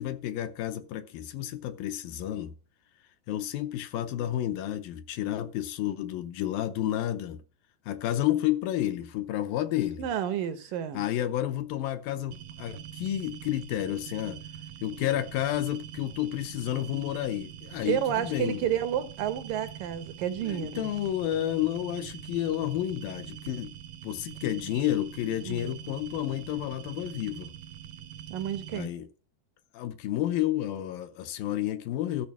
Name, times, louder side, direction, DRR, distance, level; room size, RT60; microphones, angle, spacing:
voice 1, 0.0-2.5 3.3-7.4 7.9-10.1 10.9-14.4 14.8-18.6 20.4-23.7 24.0-27.5 28.7-29.1 29.7-32.3, left 12 dB, 80° left, 2.3 m, -31 dB
voice 2, 10.0-11.0 17.9-20.9 25.4-25.7 28.3-28.9, right 10 dB, 70° right, 2.2 m, -30 dB
sound 1, 12.3-28.9, right 10 dB, 90° right, 1.7 m, -44 dB
13.5 x 5.1 x 7.2 m
omnidirectional pair, 4.4 m